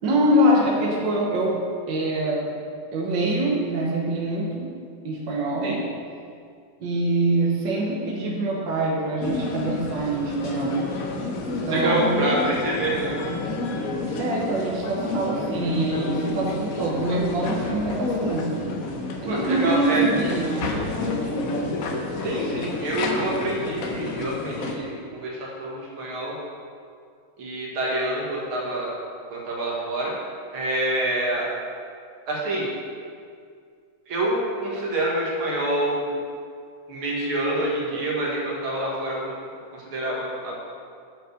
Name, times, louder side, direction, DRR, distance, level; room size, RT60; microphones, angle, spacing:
voice 1, 0.0-1.6 1.9-2.5 2.9-4.7 5.0-5.9 6.8-10.9 11.6-12.4 14.2-18.9 19.2-20.8 21.1-21.2, right 1 dB, 65° right, -2 dB, 1.8 m, -24 dB
sound 1, 9.2-24.8, left 2 dB, 55° left, 1.1 m, -29 dB
voice 2, 11.7-13.1 19.3-20.1 22.2-26.3 27.4-28.9 29.3-30.1 30.5-31.5 32.3-32.7 34.1-36.1 36.9-39.3 39.7-40.6, right 1 dB, 90° right, -4 dB, 2.5 m, -27 dB
8.8 x 5.4 x 6.4 m, 2.2 s
omnidirectional pair, 2.3 m